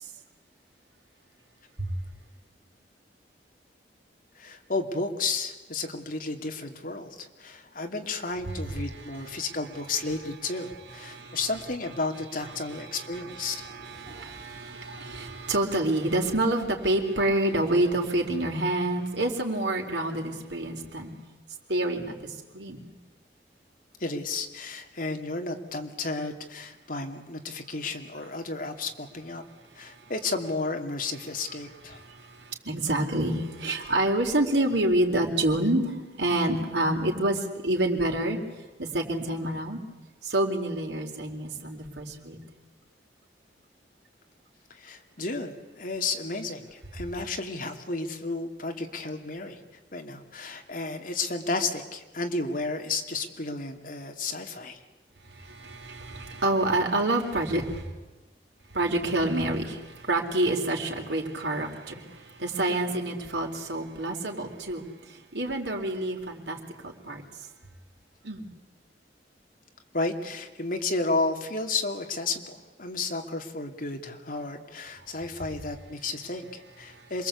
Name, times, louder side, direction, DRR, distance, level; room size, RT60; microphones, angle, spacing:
voice 1, 4.3-13.6 24.0-29.4 29.7-32.0 44.7-49.6 49.9-54.8 69.9-77.3, left 3 dB, 50° left, 4 dB, 2.6 m, -32 dB
voice 2, 8.9-9.4 11.0-11.4 12.7-21.1 21.7-22.9 30.0-30.1 31.9-38.4 38.8-39.8 40.2-42.4 55.3-57.9 58.7-67.2 68.2-68.5 76.9-77.1, right 1 dB, 70° right, 1 dB, 4.2 m, -28 dB
27.5 x 22.0 x 8.4 m, 1.1 s
head